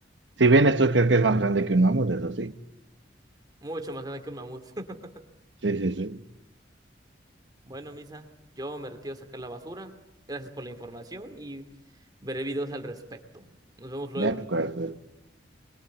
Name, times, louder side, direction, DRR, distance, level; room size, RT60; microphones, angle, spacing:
voice 1, 0.4-2.5 5.6-6.2 14.2-15.1, right 2 dB, 75° right, 1.1 m, -22 dB
voice 2, 3.6-5.2 7.6-11.7 12.2-14.4, right 1 dB, 20° right, 2.5 m, -37 dB
26.5 x 22.0 x 8.3 m
head